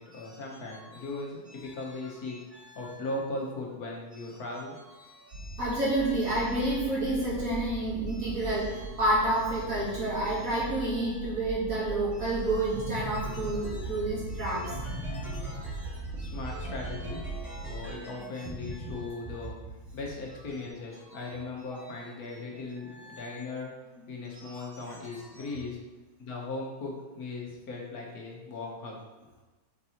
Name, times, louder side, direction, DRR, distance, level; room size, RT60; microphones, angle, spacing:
voice 1, 0.0-2.4 2.7-4.8 16.2-17.2 17.6-19.6 19.9-23.7 24.1-25.8 26.2-29.0, left 2 dB, 70° left, -1 dB, 1.6 m, -38 dB
voice 2, 5.2-15.3 16.2-16.4 17.7-17.8 18.9-19.1 21.1-21.2 22.9-23.4 24.4-24.6 24.9-25.0, right 1 dB, 60° right, -7 dB, 2.5 m, -30 dB
sound 1, 5.3-17.9, right 2 dB, 75° right, 2.7 m, -40 dB
dimented circus, 12.7-18.1 18.4-18.9 19.2-20.7, right 1 dB, ahead, 1.5 m, -40 dB
5.2 x 4.7 x 4.2 m, 1.1 s
omnidirectional pair, 1.6 m